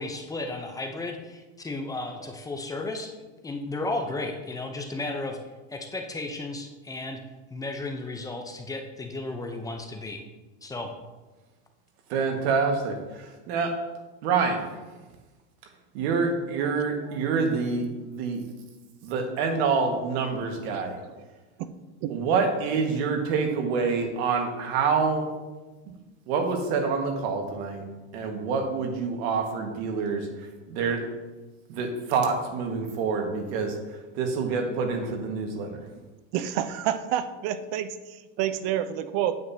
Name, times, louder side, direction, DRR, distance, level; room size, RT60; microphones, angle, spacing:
voice 1, 0.0-3.2 3.4-5.4 5.7-7.2 7.5-10.2 10.6-10.9, left 2 dB, 10° left, 4 dB, 0.6 m, -34 dB
voice 2, 12.1-13.8 14.2-14.6 15.9-18.4 19.0-21.0 22.1-25.3 26.3-27.8 28.1-30.3 30.7-31.0 31.7-33.8 34.2-35.8, right 5 dB, 65° right, 3 dB, 1.7 m, -27 dB
voice 3, 36.3-39.4, right 10 dB, 45° right, 11 dB, 0.6 m, -29 dB
9.5 x 7.9 x 2.8 m, 1.2 s
supercardioid pair, 145°, 34 cm